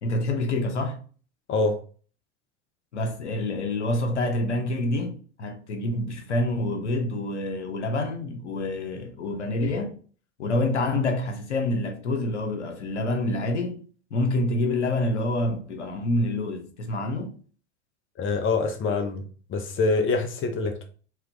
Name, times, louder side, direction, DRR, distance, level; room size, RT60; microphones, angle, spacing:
voice 1, 0.0-1.0 2.9-9.9 10.4-13.8 14.1-17.3, left 2 dB, 85° left, 0.9 m, -27 dB
voice 2, 18.2-19.2 19.5-20.8, left 3 dB, 35° left, 0.9 m, -25 dB
3.6 x 3.0 x 3.3 m
hypercardioid pair, 80°, 34 cm